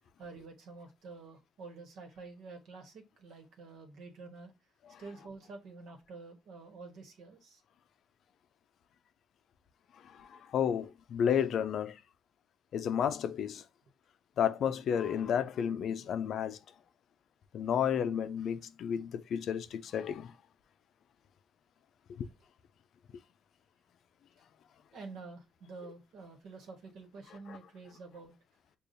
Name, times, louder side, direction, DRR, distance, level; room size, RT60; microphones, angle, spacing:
voice 1, 0.2-4.5 5.0-7.6 24.9-28.3, right 4 dB, 80° right, 1.2 m, -49 dB
voice 2, 10.2-12.0 12.7-13.6 14.4-16.6 17.5-20.3 22.1-22.3 27.5-27.6, left 8 dB, 70° left, 0.4 m, -32 dB
6.6 x 2.3 x 2.5 m
cardioid pair, 90°, 0 cm